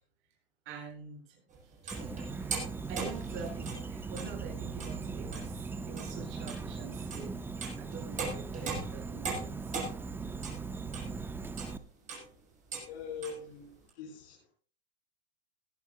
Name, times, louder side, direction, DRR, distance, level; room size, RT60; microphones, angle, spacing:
voice 1, 0.7-1.4 1.8-2.5 2.9-7.4 7.8-9.7, right 5 dB, 40° right, -1 dB, 7.5 m, -46 dB
sound 1, 1.5-4.3 4.7-5.0 5.3-5.6 6.0-6.2 6.5-6.6 7.1-11.2 11.5-11.8 12.1-12.3 12.7-12.9 13.2-13.4 13.9-14.0, right 4 dB, 25° right, 7.3 m, -40 dB
Insect, 1.9-11.8, right 4 dB, 5° right, 0.7 m, -39 dB
voice 2, 12.9-14.5, left 6 dB, 60° left, -3 dB, 6.7 m, -43 dB
21.5 x 14.5 x 2.2 m, 0.39 s
hypercardioid pair, 125°, 32 cm